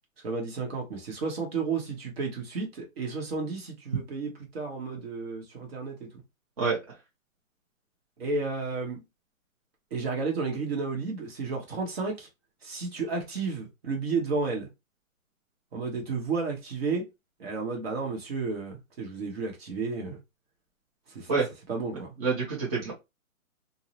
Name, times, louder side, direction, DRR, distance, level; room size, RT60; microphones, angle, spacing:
voice 1, 0.2-6.2 8.2-9.0 9.9-12.3 12.6-14.7 15.7-17.0 17.4-20.2 21.1-21.3 21.7-22.1 22.8-22.9, right 4 dB, 45° right, 1.0 m, -32 dB
voice 2, 22.2-22.9, right 4 dB, 25° right, 0.7 m, -26 dB
2.6 x 2.0 x 2.7 m
hypercardioid pair, 155°, 41 cm